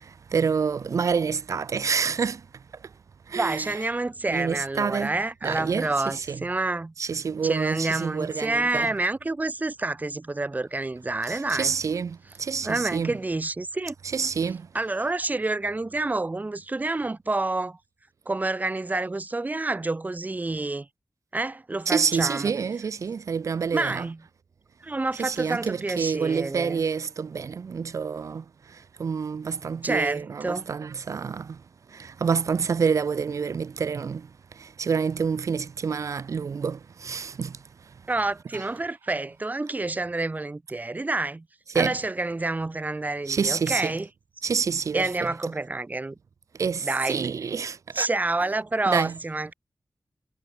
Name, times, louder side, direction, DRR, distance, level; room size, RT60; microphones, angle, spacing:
voice 1, 0.3-2.4 3.3-3.8 4.3-5.1 5.4-6.4 7.0-8.9 11.3-13.1 14.0-14.6 21.8-24.1 25.2-28.4 29.0-31.5 31.9-34.2 34.6-37.5 38.5-38.7 41.7-42.0 43.3-44.0 44.4-45.3 46.6-48.1 48.8-49.2, right 6 dB, 90° right, 1.6 m, -27 dB
voice 2, 3.3-6.9 7.4-11.7 12.6-13.9 14.7-17.8 18.3-20.9 21.3-22.5 23.7-24.2 24.8-26.8 29.8-30.7 38.1-41.5 41.7-44.1 44.9-46.1 46.8-47.2 47.9-49.5, right 2 dB, 30° right, 2.8 m, -28 dB
wide cardioid pair, 95°, 5 cm